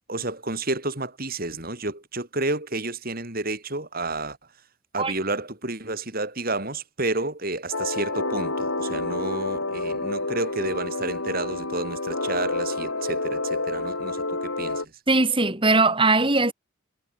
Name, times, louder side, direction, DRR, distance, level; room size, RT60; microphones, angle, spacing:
voice 1, 0.1-4.4 4.9-14.9, right 2 dB, 45° right, 6.1 m, -30 dB
sound 1, 7.7-14.9, left 2 dB, 85° left, 7.7 m, -29 dB
voice 2, 15.1-16.5, right 3 dB, 25° right, 7.3 m, -20 dB
head